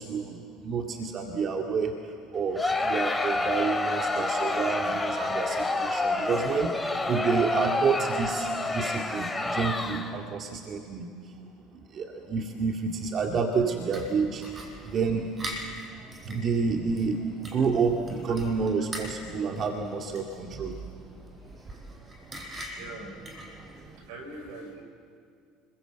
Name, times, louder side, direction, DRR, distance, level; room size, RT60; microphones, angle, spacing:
voice 1, 0.0-2.0 2.3-6.7 7.1-11.1 11.9-14.4 14.8-15.3 16.3-20.8, right 5 dB, 45° right, 2 dB, 2.2 m, -29 dB
Crowd, 2.5-10.3, left 2 dB, 15° left, 2.7 m, -28 dB
sound 1, 13.9-24.0, right 1 dB, 30° right, 5.2 m, -43 dB
voice 2, 22.8-23.1 23.7-24.9, right 3 dB, 75° right, 4 dB, 6.2 m, -42 dB
29.5 x 22.0 x 8.1 m, 2.3 s
hypercardioid pair, 75°, 0 cm